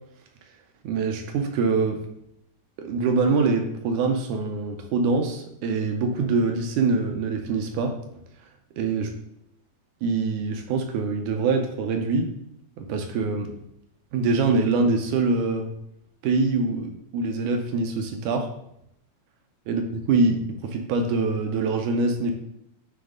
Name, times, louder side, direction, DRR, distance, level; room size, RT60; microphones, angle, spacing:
voice 1, 0.8-2.0 2.8-8.0 8.8-9.1 10.0-12.3 12.8-13.5 14.1-15.7 16.2-18.5 19.7-22.3, right 3 dB, 75° right, 4 dB, 2.0 m, -24 dB
9.3 x 3.1 x 3.7 m, 0.76 s
omnidirectional pair, 3.9 m